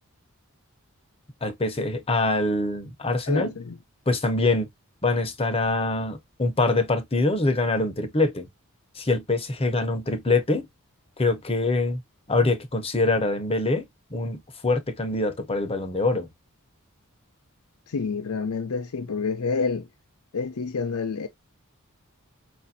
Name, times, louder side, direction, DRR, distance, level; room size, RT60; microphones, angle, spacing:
voice 1, 1.4-3.5 4.1-4.7 5.0-8.5 8.9-10.7 11.2-12.0 12.3-16.3, left 2 dB, 25° left, 0.8 m, -24 dB
voice 2, 3.3-3.8 17.9-19.9 20.3-21.3, left 5 dB, 85° left, 0.6 m, -28 dB
5.0 x 2.5 x 2.7 m
head